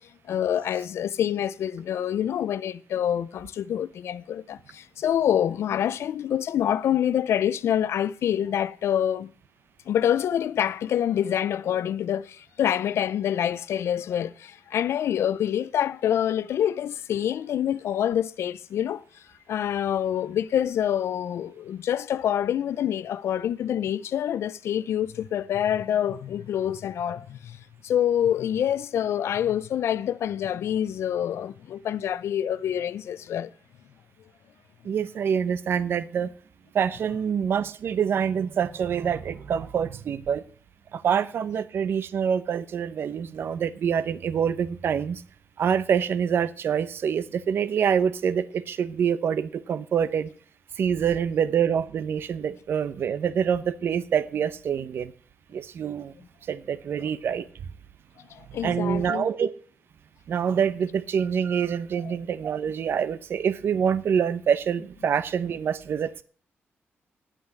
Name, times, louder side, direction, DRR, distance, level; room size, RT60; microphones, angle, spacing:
voice 1, 0.3-9.3 9.9-19.0 19.5-27.6 27.8-33.5 58.3-59.3 62.1-62.2, left 10 dB, 80° left, 0.6 m, -26 dB
voice 2, 34.8-36.3 36.7-40.4 40.9-45.2 45.6-50.3 50.8-55.1 55.5-56.1 56.5-57.5 58.6-59.5 60.3-66.2, right 7 dB, 60° right, 0.8 m, -26 dB
10.0 x 8.8 x 7.7 m
wide cardioid pair, 175°, 4 cm